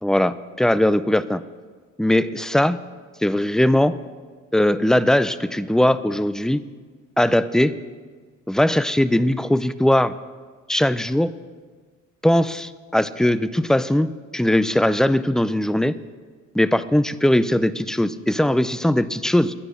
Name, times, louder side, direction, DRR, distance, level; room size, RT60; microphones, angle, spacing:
voice 1, 0.0-1.4 2.0-2.8 3.2-4.0 4.5-6.6 7.2-7.7 8.5-10.1 10.7-11.3 12.2-16.0 16.5-19.5, left 1 dB, ahead, 14 dB, 0.5 m, -20 dB
14.0 x 9.8 x 6.7 m, 1.5 s
cardioid pair, 90°, 30 cm